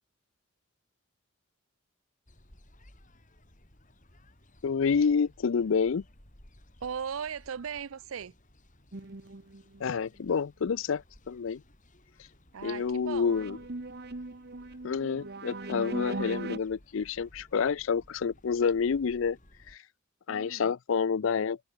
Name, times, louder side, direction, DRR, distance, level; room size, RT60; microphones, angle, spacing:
sound 1, 2.3-19.8, left 1 dB, 40° left, 4.6 m, -59 dB
voice 1, 4.6-6.0 9.8-11.6 12.6-13.6 14.8-19.4 19.7-19.8 20.3-21.6, left 6 dB, 70° left, 0.5 m, -28 dB
voice 2, 6.8-8.3 12.5-13.4 20.3-20.7, right 7 dB, 85° right, 0.5 m, -38 dB
sound 2, 8.9-10.0 13.2-16.6, right 2 dB, 55° right, 1.1 m, -39 dB
head